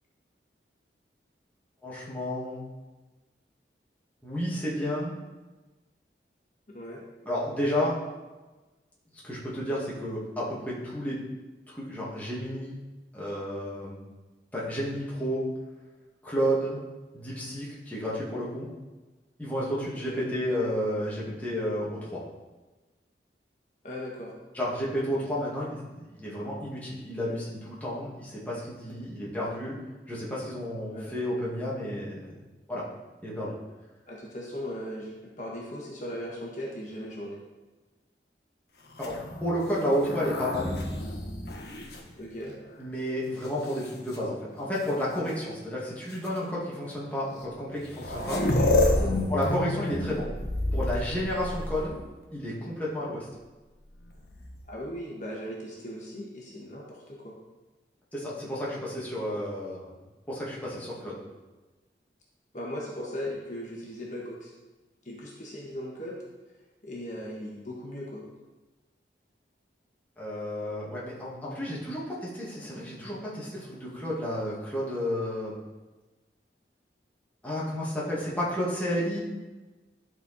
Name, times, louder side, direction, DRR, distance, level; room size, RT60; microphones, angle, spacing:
voice 1, 1.8-2.7 4.2-5.1 7.2-8.0 9.2-11.2 11.7-12.8 13.1-14.0 14.5-15.5 16.2-16.8 17.1-18.7 19.4-22.2 24.5-29.8 30.1-32.3 32.7-32.8 33.2-33.5 39.0-39.1 39.4-40.8 42.8-48.4 49.3-50.3 50.7-51.9 52.3-53.3 58.1-59.9 60.3-61.2 70.2-75.6 77.4-79.2, equal, 10° left, -7 dB, 1.9 m, -31 dB
voice 2, 6.7-7.0 20.1-20.2 23.8-24.3 30.9-31.2 34.1-37.4 42.2-42.5 48.4-49.4 54.7-57.3 62.5-64.5 65.0-66.2 66.8-68.2, equal, 45° left, -4 dB, 1.4 m, -38 dB
sound 1, 38.9-42.8 43.4-44.2 45.3-45.4 46.1-46.3 47.4-47.5 47.7-52.2 54.1-54.8, left 1 dB, 65° left, 1.3 m, -30 dB
12.0 x 4.5 x 4.2 m, 1.2 s
head